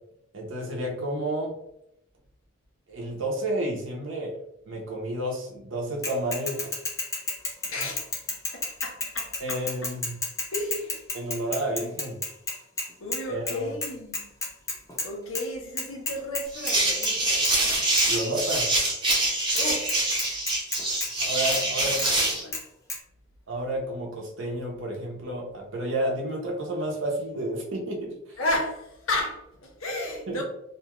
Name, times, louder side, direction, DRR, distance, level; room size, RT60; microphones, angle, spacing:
voice 1, 0.3-1.6 2.9-4.4 4.7-6.7 9.4-10.2 11.1-12.2 13.3-13.7 18.1-18.7 21.2-22.0 23.5-28.4 30.3-30.4, right 1 dB, 65° right, 0.7 m, -31 dB
Bicycle / Mechanisms, 6.0-13.2 13.5-13.6 13.8-15.1 15.3-15.4 15.8-16.7 17.0-17.2 17.4-17.5 18.0-18.1 19.1-19.2 19.6-19.7 19.9-21.1 21.5-21.6 22.0-22.1 22.5-22.6 22.9-23.0, left 2 dB, 15° left, 0.6 m, -31 dB
voice 2, 7.6-8.1 8.5-9.9 10.5-11.0 13.0-14.3 15.0-17.5 19.5-20.0 21.5-22.6 28.4-30.4, left 1 dB, 85° left, 0.8 m, -33 dB
sound 1, 16.5-22.4, right 2 dB, 25° right, 0.8 m, -25 dB
2.7 x 2.3 x 3.0 m
head